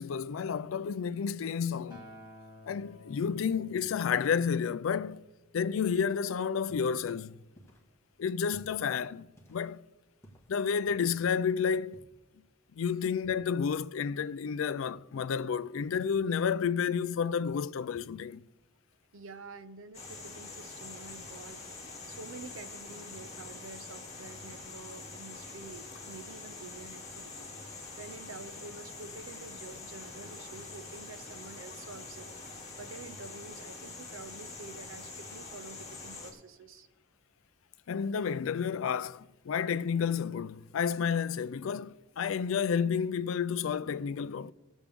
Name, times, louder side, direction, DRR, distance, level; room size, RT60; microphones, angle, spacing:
voice 1, 0.0-2.0 2.7-5.2 5.5-7.4 8.2-9.8 10.5-12.0 12.8-18.4 37.9-44.5, left 6 dB, 70° left, 0.4 m, -31 dB
Acoustic guitar, 1.9-6.2 7.0-7.1, left 1 dB, 20° right, 2.3 m, -54 dB
sound 1, 6.5-12.0, right 1 dB, 15° left, 1.6 m, -58 dB
voice 2, 19.1-21.6 22.1-36.9, right 3 dB, 70° right, 0.7 m, -48 dB
sound 2, 19.9-36.3, left 3 dB, 30° left, 2.5 m, -45 dB
19.0 x 7.2 x 3.5 m
head